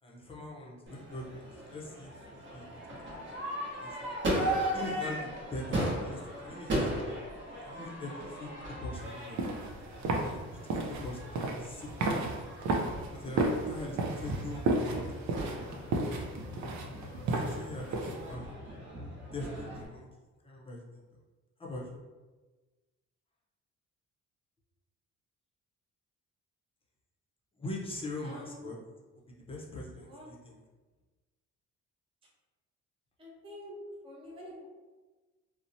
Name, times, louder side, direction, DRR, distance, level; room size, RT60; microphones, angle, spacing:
voice 1, 0.0-4.0 4.7-7.1 7.6-8.5 8.8-9.4 10.2-12.2 13.1-14.6 14.9-16.3 17.3-18.6 19.3-20.1 20.4-21.0 21.6-21.9 27.6-28.8 29.5-30.6, left 1 dB, 20° left, -3 dB, 0.6 m, -42 dB
Crowd / Fireworks, 0.9-19.9, right 1 dB, 40° right, 0.9 m, -38 dB
sound 1, 9.1-18.3, right 2 dB, 65° right, 0.5 m, -33 dB
voice 2, 28.2-28.6 30.0-30.3 33.2-33.7 34.0-34.7, left 1 dB, 20° right, -4 dB, 0.6 m, -47 dB
2.8 x 2.1 x 2.6 m, 1.3 s
cardioid pair, 90°, 30 cm